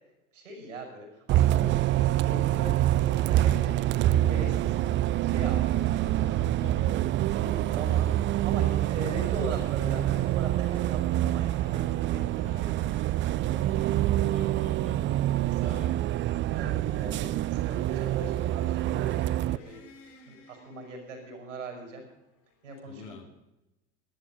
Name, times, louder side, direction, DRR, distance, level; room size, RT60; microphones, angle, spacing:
voice 1, 0.3-4.9 5.2-6.5 6.7-7.0 7.3-12.8 15.3-15.9 16.5-19.8 20.3-22.0 22.6-23.3, right 2 dB, 80° right, 3 dB, 5.9 m, -41 dB
Bus, 1.3-19.6, right 14 dB, 30° right, 0.4 m, -26 dB
sound 1, 3.0-22.7, left 3 dB, 50° left, 5.4 m, -57 dB
voice 2, 6.6-7.2 13.6-15.2 15.6-15.9 22.8-23.2, left 5 dB, 70° left, 2 dB, 3.2 m, -46 dB
14.0 x 11.0 x 9.0 m, 0.96 s
hypercardioid pair, 75°, 37 cm